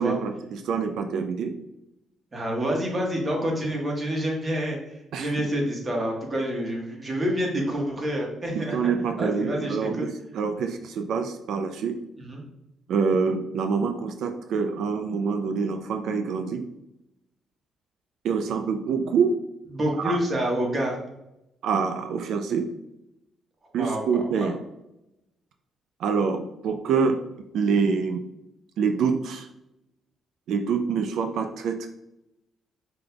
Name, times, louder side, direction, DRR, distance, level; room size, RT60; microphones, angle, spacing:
voice 1, 0.0-1.6 5.1-5.5 8.5-12.0 12.9-16.7 18.2-19.4 20.0-20.2 21.6-22.7 23.7-24.6 26.0-27.2 27.5-28.2 28.8-29.5 30.5-31.9, right 5 dB, 75° right, 6 dB, 0.4 m, -26 dB
voice 2, 2.3-8.7 9.2-10.0 12.2-12.4 19.7-21.0 23.8-24.5, equal, 35° right, -1 dB, 1.4 m, -28 dB
5.1 x 3.8 x 2.3 m, 0.87 s
cardioid pair, 90°, 0 cm